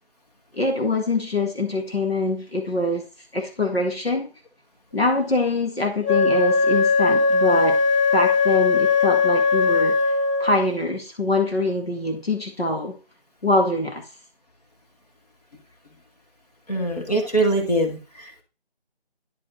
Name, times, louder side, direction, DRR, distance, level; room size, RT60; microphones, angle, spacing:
voice 1, 0.5-3.1 3.3-4.3 4.9-7.8 8.1-13.0 13.4-14.1, left 2 dB, 70° left, 2 dB, 2.0 m, -24 dB
Wind instrument woodwind instrument, 6.0-10.7, left 4 dB, 30° right, 0.7 m, -19 dB
voice 2, 16.7-18.4, right 1 dB, 40° left, 1 dB, 2.0 m, -23 dB
9.9 x 5.2 x 4.2 m, 0.32 s
figure-of-eight pair, 165°, 32 cm